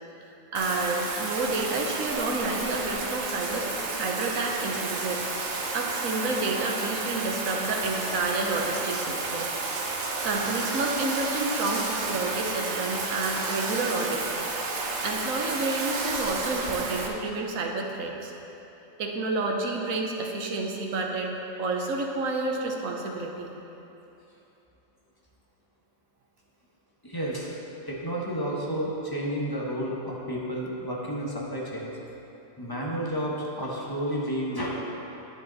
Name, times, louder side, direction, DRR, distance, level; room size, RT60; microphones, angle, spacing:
Bathtub (filling or washing), 0.5-17.1, right 3 dB, 60° right, 1.2 m, -31 dB
voice 1, 0.5-9.5 10.2-14.2 14.8-18.3 19.0-21.3 21.6-23.5, right 3 dB, 80° right, 1 dB, 1.4 m, -30 dB
voice 2, 27.0-27.6 27.9-31.9 32.6-34.7, equal, 15° left, -4 dB, 1.3 m, -31 dB
10.5 x 8.2 x 4.0 m, 3.0 s
omnidirectional pair, 1.4 m